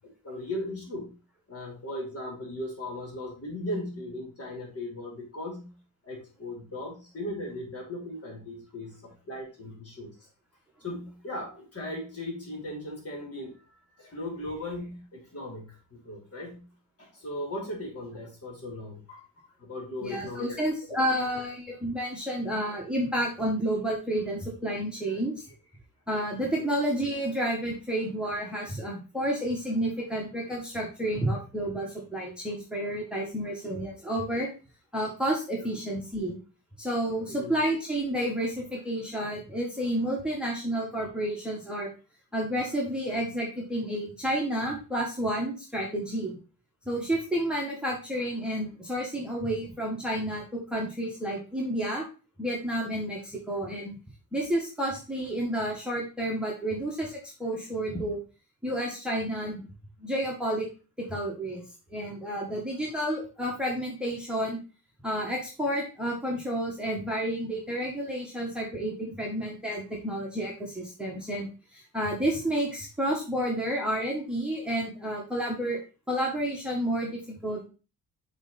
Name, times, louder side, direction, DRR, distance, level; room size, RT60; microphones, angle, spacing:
voice 1, 0.2-1.1 1.5-5.7 6.0-10.1 10.8-13.5 14.0-16.6 17.0-19.2 19.6-20.6 26.6-26.7 35.6-35.7 37.3-37.5, left 1 dB, 40° left, -1 dB, 2.9 m, -37 dB
voice 2, 20.0-25.4 26.1-34.5 34.9-36.4 36.8-41.9 42.3-46.4 46.9-52.0 52.4-54.0 54.3-58.2 58.6-59.6 60.0-60.7 61.0-61.6 61.9-64.6 65.0-75.8 76.1-77.6, right 1 dB, 5° right, -3 dB, 1.4 m, -30 dB
7.3 x 3.3 x 4.1 m, 0.34 s
wide cardioid pair, 130°, 35 cm